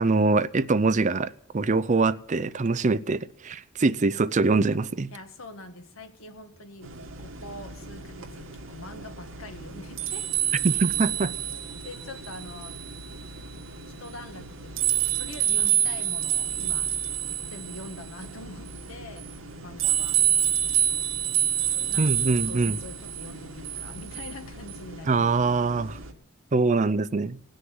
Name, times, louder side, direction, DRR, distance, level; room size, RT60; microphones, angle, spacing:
voice 1, 0.0-5.1 10.6-11.3 22.0-22.8 25.1-26.0 26.5-27.4, right 3 dB, 35° right, 0.5 m, -24 dB
voice 2, 5.1-10.3 10.7-10.8 11.8-12.8 13.8-16.9 17.5-19.3 19.6-20.2 21.7-25.3, left 1 dB, 85° left, 1.7 m, -44 dB
sound 1, 6.8-26.1, right 9 dB, 75° right, 2.1 m, -29 dB
18.0 x 6.5 x 9.5 m
head